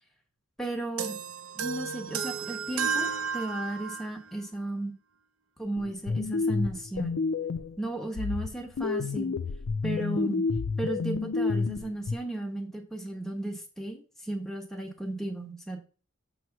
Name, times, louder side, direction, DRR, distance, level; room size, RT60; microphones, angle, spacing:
voice 1, 0.6-1.1 1.5-4.9 5.6-7.2 7.8-9.3 9.8-10.4 10.8-15.8, right 1 dB, ahead, 1 dB, 1.0 m, -34 dB
sound 1, 1.0-4.2, right 6 dB, 80° right, 0.6 m, -33 dB
sound 2, 5.8-7.8 8.2-12.2, left 4 dB, 65° left, 0.4 m, -30 dB
6.8 x 3.1 x 5.8 m, 0.38 s
head